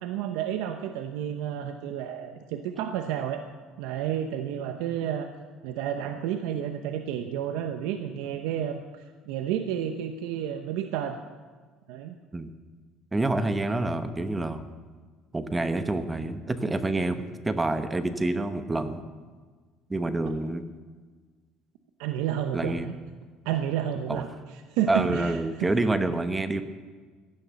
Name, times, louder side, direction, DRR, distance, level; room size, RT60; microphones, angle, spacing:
voice 1, 0.0-3.4 3.8-5.3 5.6-11.2 11.9-12.1 22.0-22.9 23.4-24.3 24.7-25.9, right 10 dB, 85° right, 7 dB, 0.9 m, -31 dB
voice 2, 13.1-14.6 15.3-19.0 19.9-20.6 22.5-22.9 24.1-24.2 24.9-26.6, right 2 dB, 15° right, 10 dB, 1.0 m, -27 dB
15.5 x 11.0 x 7.0 m, 1.5 s
cardioid pair, 130°, 0 cm